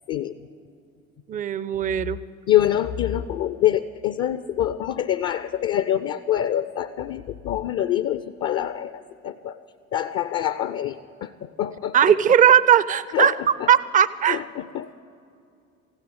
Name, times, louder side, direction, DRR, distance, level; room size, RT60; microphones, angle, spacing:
voice 1, 1.3-2.2 11.9-13.4 13.7-14.4, right 9 dB, 20° right, 18 dB, 0.4 m, -18 dB
voice 2, 2.5-9.6 9.9-12.0 13.1-13.3 13.6-13.7 14.3-15.0, left 11 dB, 35° left, 12 dB, 0.5 m, -25 dB
15.5 x 9.8 x 8.8 m, 2.5 s
figure-of-eight pair, 55°, 43 cm